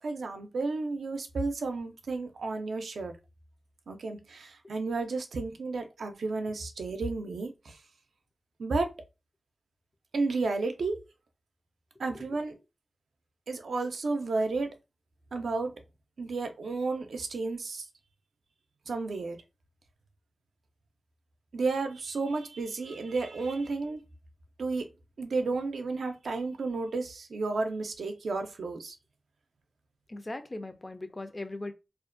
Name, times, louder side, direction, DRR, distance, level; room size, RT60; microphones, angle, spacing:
voice 1, 0.0-3.1 3.9-7.8 8.6-8.9 10.1-11.0 12.0-12.5 13.5-14.7 15.3-15.8 16.2-17.9 18.9-19.4 21.5-24.0 24.6-24.9 25.2-28.9, right 3 dB, 90° right, 0.4 m, -32 dB
voice 2, 30.1-31.7, left 2 dB, 35° left, 0.4 m, -38 dB
2.4 x 2.1 x 2.4 m
cardioid pair, 45°, 0 cm